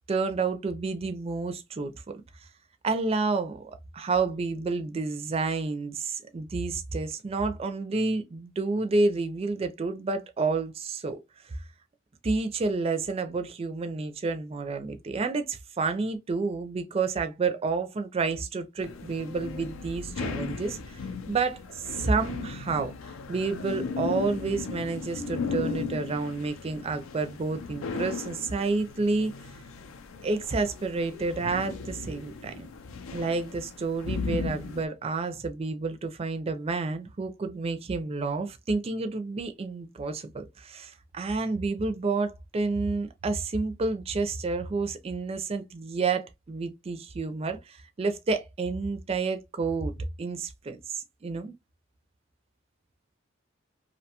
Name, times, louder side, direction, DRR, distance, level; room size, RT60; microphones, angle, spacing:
voice 1, 0.1-1.9 2.8-11.2 11.5-11.6 12.2-21.0 21.3-22.9 23.3-29.3 30.2-32.7 33.1-49.9 50.2-51.5, right 3 dB, 30° right, 0.4 m, -30 dB
sound 1, 18.8-34.9, left 5 dB, 85° left, 0.5 m, -36 dB
2.6 x 2.2 x 2.8 m
head